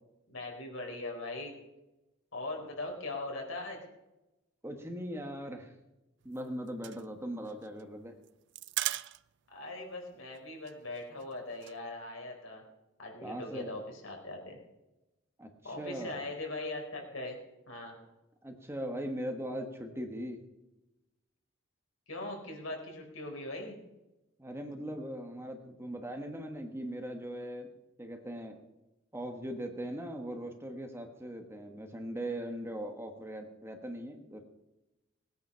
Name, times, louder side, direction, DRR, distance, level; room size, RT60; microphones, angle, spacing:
voice 1, 0.3-1.5 2.3-3.8 9.5-12.6 13.0-14.6 15.6-17.4 17.7-18.0 22.1-23.8, left 2 dB, 75° left, 1 dB, 4.3 m, -40 dB
voice 2, 4.6-5.7 6.2-8.1 13.2-13.7 15.4-15.5 15.8-16.2 18.4-20.4 24.4-27.7 28.0-28.6 29.1-34.4, equal, 10° right, 5 dB, 1.3 m, -40 dB
sound 1, 6.2-9.6 9.8-9.9 10.2-10.4 10.7-11.8, right 15 dB, 60° right, 0.4 m, -38 dB
19.0 x 9.4 x 5.7 m, 0.99 s
head